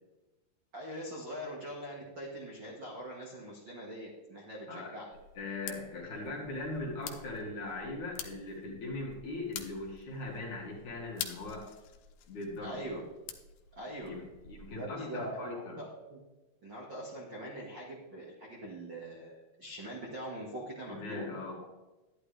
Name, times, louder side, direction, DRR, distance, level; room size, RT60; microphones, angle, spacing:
voice 1, 0.7-5.0 12.6-13.0 13.8-14.1 14.7-16.2 16.6-21.2, equal, 55° right, -3 dB, 1.2 m, -42 dB
sound 1, 5.1-14.9, left 9 dB, 80° left, 2.9 m, -47 dB
voice 2, 5.4-11.7 12.3-12.8 14.1-15.8 20.9-21.6, left 2 dB, 55° left, -3 dB, 2.6 m, -40 dB
11.5 x 11.0 x 3.4 m, 1.1 s
omnidirectional pair, 5.1 m